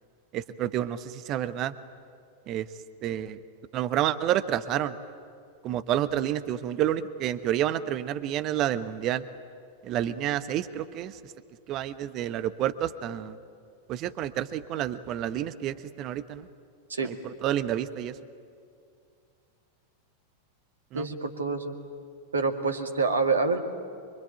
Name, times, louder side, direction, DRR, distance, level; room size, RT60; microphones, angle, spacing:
voice 1, 0.3-1.7 2.5-2.7 3.0-3.4 3.7-4.9 5.6-9.2 9.8-11.1 11.7-13.4 13.9-16.5 17.0-17.1 17.4-18.1 20.9-21.1, right 11 dB, 35° right, 12 dB, 1.0 m, -29 dB
voice 2, 20.9-21.7 22.3-23.6, right 4 dB, 75° right, 6 dB, 2.2 m, -27 dB
25.5 x 24.5 x 9.1 m, 2.4 s
figure-of-eight pair, 90°, 0 cm